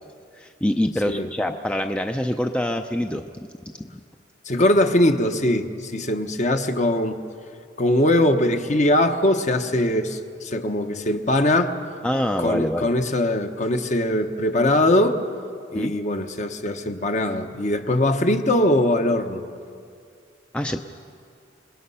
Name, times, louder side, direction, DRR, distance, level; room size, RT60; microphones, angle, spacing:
voice 1, 0.4-3.3 12.0-12.9 15.7-15.9 20.5-20.8, left 1 dB, 5° left, 6 dB, 0.5 m, -25 dB
voice 2, 4.5-7.2 7.8-11.7 12.4-15.2 15.7-19.4, left 1 dB, 40° left, 6 dB, 1.1 m, -21 dB
27.0 x 21.0 x 5.7 m, 2.3 s
head